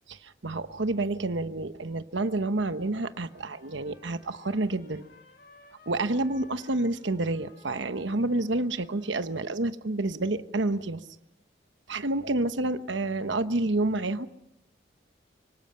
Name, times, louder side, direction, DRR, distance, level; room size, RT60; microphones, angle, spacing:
voice 1, 0.1-5.1 5.9-11.1 11.9-14.3, right 2 dB, 80° right, 10 dB, 1.1 m, -29 dB
Trumpet, 2.9-9.7, left 3 dB, 55° left, 5.3 m, -58 dB
25.0 x 24.5 x 5.8 m, 0.79 s
head